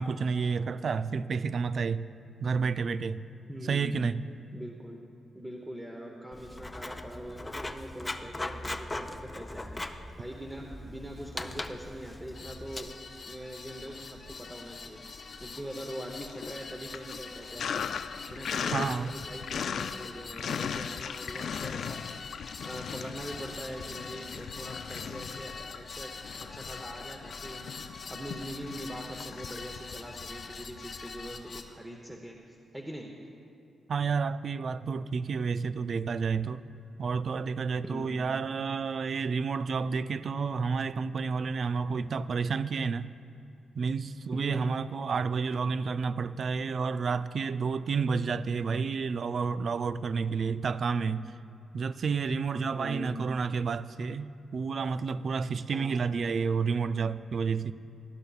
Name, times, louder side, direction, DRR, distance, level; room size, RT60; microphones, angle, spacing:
voice 1, 0.0-2.1 2.4-3.2 3.6-4.2 18.7-19.1 33.9-36.6 37.0-43.1 43.7-51.3 51.7-57.7, right 5 dB, 55° right, 0.3 m, -30 dB
voice 2, 3.5-4.1 4.5-5.0 5.3-9.8 10.2-12.9 13.2-17.9 18.3-26.1 26.4-33.1 37.8-38.2 44.3-44.8 52.8-53.3 55.7-56.0, right 1 dB, 10° right, 0.8 m, -42 dB
Writing, 6.3-12.8, left 2 dB, 15° left, 0.5 m, -39 dB
sound 1, 12.3-31.6, left 4 dB, 50° left, 1.0 m, -44 dB
Sink (filling or washing), 13.8-14.7 15.0-31.1, left 7 dB, 70° left, 0.3 m, -39 dB
18.5 x 11.5 x 2.4 m
cardioid pair, 95°, 0 cm